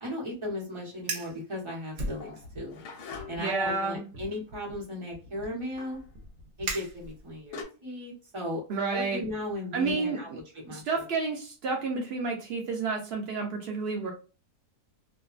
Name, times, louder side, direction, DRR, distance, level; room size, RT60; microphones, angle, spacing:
voice 1, 0.0-2.8 3.3-6.0 6.6-8.6 8.9-10.3 10.6-11.0, left 1 dB, 20° right, -3 dB, 0.9 m, -36 dB
Fire, 0.9-1.4 1.9-2.7 3.1-3.4 4.1-7.5, right 2 dB, 60° right, 1.0 m, -39 dB
sound 1, 2.2-3.6 5.8-6.1 7.1-7.2 7.5-7.6, left 5 dB, 70° left, 1.1 m, -43 dB
voice 2, 3.4-4.0 8.7-9.2 9.7-10.2 10.7-14.1, right 4 dB, 85° right, 1 dB, 0.5 m, -30 dB
2.7 x 2.3 x 2.3 m, 0.34 s
omnidirectional pair, 1.7 m